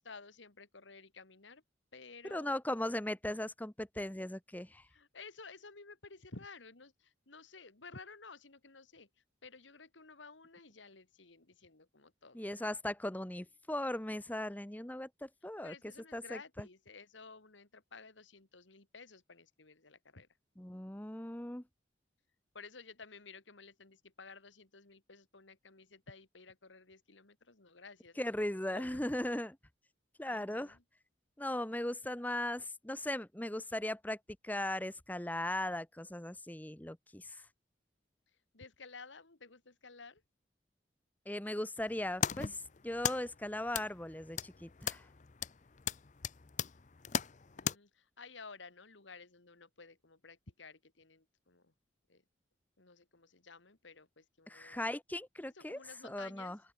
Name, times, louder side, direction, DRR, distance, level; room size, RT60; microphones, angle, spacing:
voice 1, 0.0-1.6 1.9-2.6 4.9-12.5 15.6-20.3 22.5-29.0 30.3-30.8 38.3-40.2 47.6-51.7 52.1-52.2 52.8-54.8 55.5-56.6, left 4 dB, 80° left, 2.1 m, -54 dB
voice 2, 2.3-4.9 12.3-15.7 16.1-16.7 20.6-21.6 28.2-29.6 30.2-30.8 31.4-37.4 41.3-45.1 54.5-56.6, left 1 dB, 10° left, 1.0 m, -38 dB
sound 1, 41.9-47.8, left 7 dB, 40° left, 0.6 m, -39 dB
open air
head